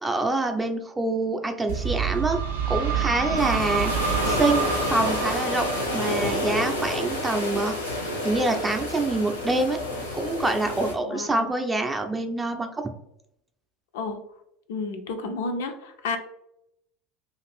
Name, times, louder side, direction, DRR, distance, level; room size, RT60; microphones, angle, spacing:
voice 1, 0.0-2.4 2.7-3.9 4.3-5.7 5.9-7.8 8.2-9.8 10.1-12.7, right 2 dB, 15° right, 5 dB, 0.4 m, -26 dB
sound 1, 1.7-7.3, right 6 dB, 75° right, 0.5 m, -28 dB
sound 2, 3.4-10.9, left 1 dB, 85° left, 0.7 m, -29 dB
voice 2, 11.0-11.5 13.9-14.2 14.7-16.2, left 3 dB, 65° left, 5 dB, 0.4 m, -31 dB
2.5 x 2.4 x 3.2 m, 0.77 s
figure-of-eight pair, 70°, 0 cm